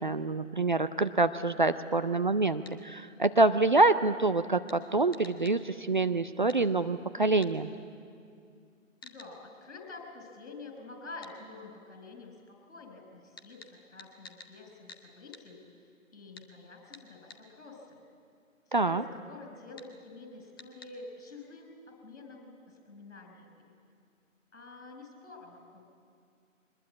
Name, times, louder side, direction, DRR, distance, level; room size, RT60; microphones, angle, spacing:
voice 1, 0.0-7.7 18.7-19.0, right 3 dB, 40° right, 11 dB, 0.5 m, -26 dB
sound 1, 2.6-2.8 4.7-4.8 5.1-5.6 6.5-6.6 7.4-7.5 9.0-9.3 11.2-11.4 13.4-14.5 14.9-15.0 15.3-15.5 16.3-16.5 16.9-17.4 19.8-19.9 20.6-20.9, left 4 dB, 15° left, 0.7 m, -50 dB
voice 2, 9.0-18.0 18.8-23.7 24.5-25.8, left 3 dB, 60° left, 4 dB, 5.2 m, -48 dB
22.5 x 20.5 x 8.5 m, 2.3 s
figure-of-eight pair, 145°, 40 cm